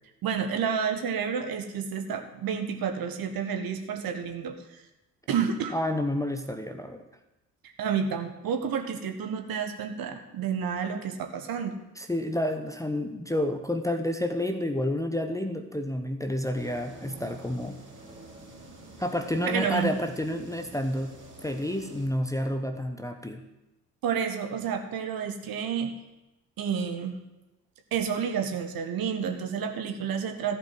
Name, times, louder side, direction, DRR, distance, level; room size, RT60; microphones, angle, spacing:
voice 1, 0.2-4.5 5.3-5.7 7.8-11.8 19.4-19.9 24.0-25.9 26.6-27.2 27.9-30.6, right 7 dB, 50° right, 6 dB, 1.5 m, -30 dB
voice 2, 5.7-7.0 12.0-17.8 19.0-21.1 21.4-23.4, left 1 dB, 5° left, 5 dB, 0.9 m, -29 dB
sound 1, 16.5-22.1, right 2 dB, 25° right, 4.0 m, -47 dB
14.5 x 5.2 x 7.6 m, 0.96 s
figure-of-eight pair, 50°, 45 cm